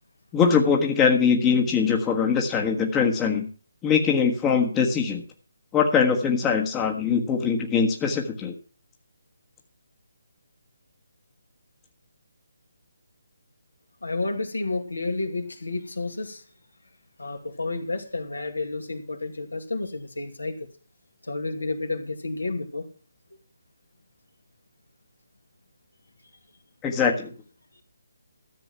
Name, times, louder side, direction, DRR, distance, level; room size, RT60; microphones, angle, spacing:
voice 1, 0.3-3.5 3.8-5.2 5.7-8.5 26.8-27.3, left 6 dB, 15° left, 1.5 m, -22 dB
voice 2, 14.0-16.4 17.2-20.6 21.3-22.9, left 3 dB, 75° left, 2.4 m, -30 dB
14.0 x 7.8 x 5.9 m
figure-of-eight pair, 145°, 0 cm